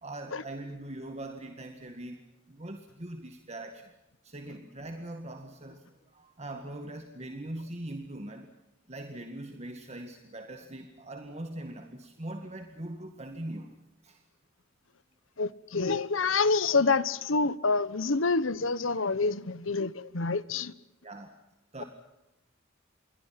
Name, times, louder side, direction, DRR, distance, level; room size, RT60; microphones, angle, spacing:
voice 1, 0.0-3.9 4.2-8.5 8.9-13.7 14.0-14.2 21.0-21.3 21.7-21.8, right 1 dB, 35° right, 1.9 m, -41 dB
voice 2, 15.4-20.7, left 4 dB, 80° left, 1.1 m, -27 dB
28.5 x 23.0 x 5.9 m
head